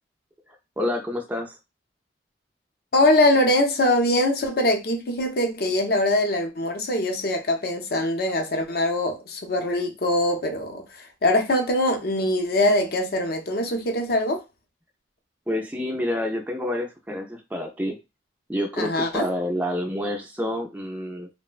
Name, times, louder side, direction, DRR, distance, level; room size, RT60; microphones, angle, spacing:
voice 1, 0.8-1.6 15.5-18.0 18.5-21.3, left 1 dB, 10° right, 0.3 m, -28 dB
voice 2, 2.9-14.4 18.8-19.3, left 1 dB, 55° left, 0.5 m, -23 dB
3.0 x 2.1 x 2.4 m
head